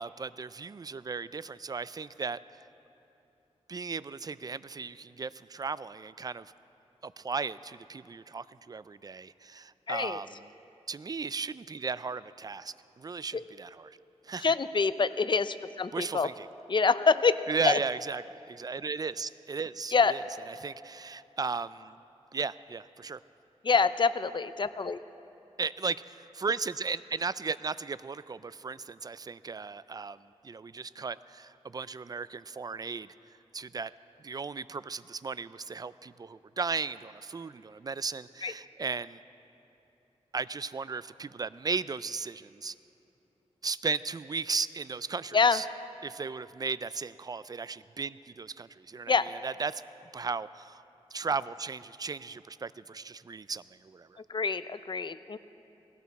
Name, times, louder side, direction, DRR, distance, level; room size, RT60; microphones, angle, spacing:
voice 1, 0.0-2.4 3.7-6.5 7.0-10.5 10.9-13.9 14.2-14.5 15.9-16.5 17.5-20.2 20.5-22.0 22.3-23.2 25.6-30.2 30.4-33.1 33.5-33.9 34.2-39.2 40.3-42.7 43.6-45.7 46.0-49.8 50.1-50.8 51.1-54.2, right 4 dB, 35° right, 16 dB, 0.4 m, -36 dB
voice 2, 9.9-10.2 13.3-13.4 14.4-16.3 16.7-17.4 17.6-17.8 19.9-20.1 23.6-25.0 38.4-38.5 45.3-45.6 49.1-49.3 54.3-55.4, left 5 dB, 45° left, 14 dB, 0.5 m, -26 dB
19.0 x 16.5 x 4.1 m, 2.9 s
cardioid pair, 70°, 11 cm